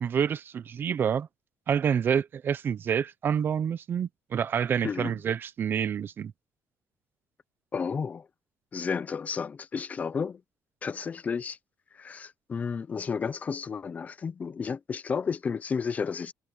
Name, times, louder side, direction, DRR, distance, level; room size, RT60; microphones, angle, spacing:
voice 1, 0.0-1.3 1.7-6.3, right 8 dB, 40° right, 0.7 m, -28 dB
voice 2, 4.8-5.2 7.7-8.3 8.7-10.4 10.8-11.6 11.9-16.3, left 6 dB, 25° left, 0.6 m, -32 dB
cardioid pair, 160°, 6 cm